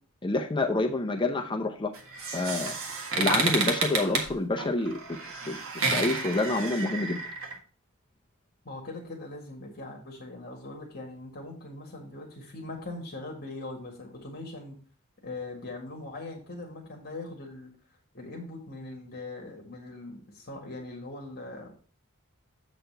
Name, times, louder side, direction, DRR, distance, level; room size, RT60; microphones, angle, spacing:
voice 1, 0.2-1.9 2.3-2.7 3.1-5.0 5.5-5.6 5.9-7.2, left 2 dB, 20° left, 4 dB, 0.6 m, -27 dB
sound 1, 1.9-7.5, right 4 dB, 65° right, 1.6 m, -30 dB
voice 2, 8.6-14.8 15.2-17.7 18.1-21.7, left 2 dB, 45° left, 0 dB, 1.8 m, -41 dB
7.9 x 4.2 x 5.4 m, 0.40 s
head